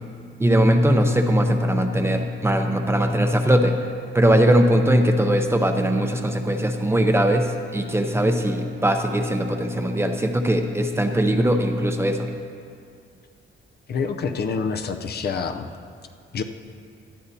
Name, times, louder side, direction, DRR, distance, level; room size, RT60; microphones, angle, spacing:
voice 1, 0.4-3.7 4.1-12.3, equal, 10° right, 4 dB, 0.7 m, -20 dB
voice 2, 13.9-15.7 16.3-16.4, left 5 dB, 50° left, 7 dB, 0.6 m, -27 dB
18.5 x 12.5 x 2.8 m, 2.3 s
cardioid pair, 145°, 21 cm